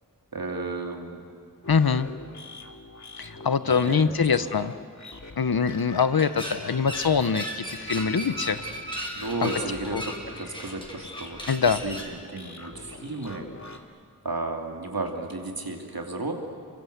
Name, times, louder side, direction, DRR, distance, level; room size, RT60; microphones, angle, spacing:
voice 1, 0.3-1.2 3.7-4.5 9.1-11.4 11.8-13.5 14.2-16.3, right 2 dB, 80° right, 2 dB, 2.9 m, -33 dB
sound 1, 1.6-13.8, left 2 dB, 50° left, 2.3 m, -44 dB
voice 2, 1.7-2.1 3.2-4.7 5.4-8.6 9.4-9.5 9.9-10.0 11.5-11.8, left 6 dB, 90° left, 13 dB, 0.9 m, -23 dB
sound 2, 5.5-12.2, right 1 dB, 15° left, 4.1 m, -37 dB
28.0 x 23.0 x 8.0 m, 2.2 s
wide cardioid pair, 45°, 35 cm